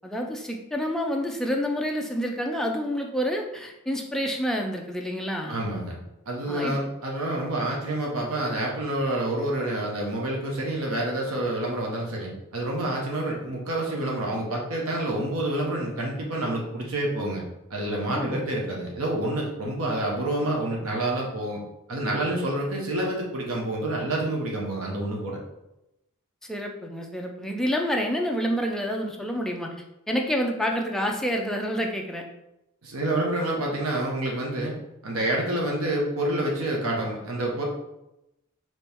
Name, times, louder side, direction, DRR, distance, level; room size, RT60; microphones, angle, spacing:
voice 1, 0.0-5.6 6.5-6.7 18.1-18.5 26.5-29.7 30.1-32.2, equal, ahead, 1 dB, 0.4 m, -28 dB
voice 2, 5.5-6.0 6.3-17.4 17.7-21.6 21.9-25.4 32.8-34.8 35.0-37.6, right 1 dB, 75° right, -2 dB, 0.9 m, -28 dB
4.4 x 3.0 x 3.4 m, 0.90 s
head